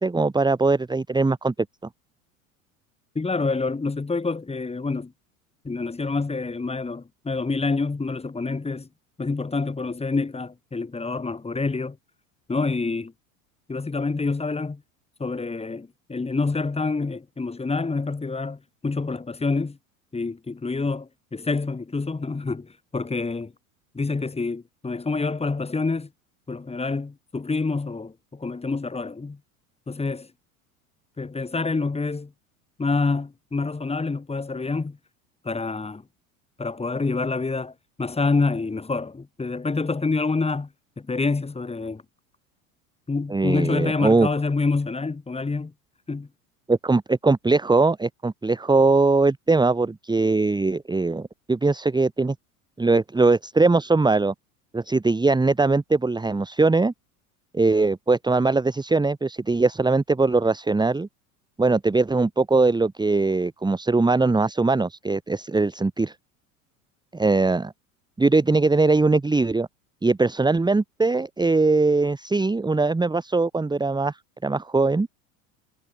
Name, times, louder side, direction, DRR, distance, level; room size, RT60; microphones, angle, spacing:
voice 1, 0.0-1.5 43.3-44.3 46.7-52.3 52.8-54.3 54.7-56.9 57.5-61.1 61.6-66.1 67.1-67.7 68.2-69.7 70.0-74.1 74.4-75.1, right 3 dB, 10° right, 2.1 m, -21 dB
voice 2, 3.2-5.1 5.6-8.9 9.2-12.0 12.5-13.1 13.7-14.8 15.2-19.8 20.1-23.5 23.9-26.1 26.5-29.4 29.9-30.3 31.2-32.3 32.8-35.0 35.4-36.0 36.6-37.7 38.0-40.7 41.0-42.0 43.1-45.7 46.1-46.3, left 3 dB, 15° left, 5.7 m, -27 dB
hypercardioid pair, 85°, 42 cm